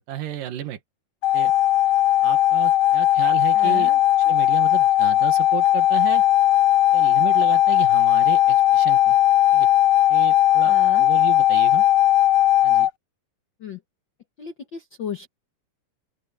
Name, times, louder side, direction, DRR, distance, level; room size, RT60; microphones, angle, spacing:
voice 1, 0.1-0.8 1.3-1.5 2.2-3.9 4.3-6.3 6.9-9.2 9.5-9.7 10.1-11.8 12.6-12.9, right 12 dB, 75° right, 3.4 m, -32 dB
sound 1, 1.2-12.9, left 13 dB, 85° left, 1.5 m, -18 dB
voice 2, 3.5-4.0 10.6-11.1 13.6-13.8 14.4-15.3, left 8 dB, 65° left, 1.1 m, -35 dB
open air
omnidirectional pair, 4.0 m